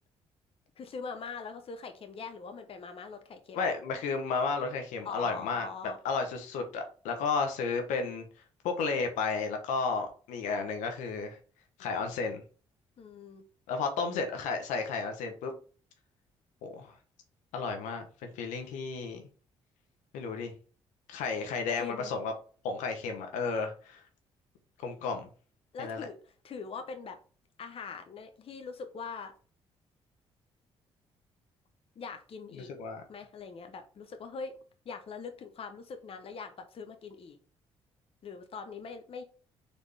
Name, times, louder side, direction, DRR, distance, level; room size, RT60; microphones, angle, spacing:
voice 1, 0.8-3.7 5.0-6.0 13.0-13.5 21.8-22.1 25.7-26.2 26.4-27.2 27.6-29.3 32.0-32.7 33.1-34.6 34.8-37.4 38.2-39.2, left 5 dB, 50° left, 6 dB, 0.8 m, -42 dB
voice 2, 3.5-5.7 6.0-8.3 8.6-11.4 11.8-12.4 13.7-15.5 16.6-17.0 17.5-19.2 20.1-20.5 21.1-22.3 22.6-24.0 24.8-25.3 25.8-26.1 32.5-33.0, left 4 dB, 80° left, 5 dB, 0.9 m, -33 dB
4.1 x 3.4 x 3.3 m, 0.39 s
supercardioid pair, 55°, 13 cm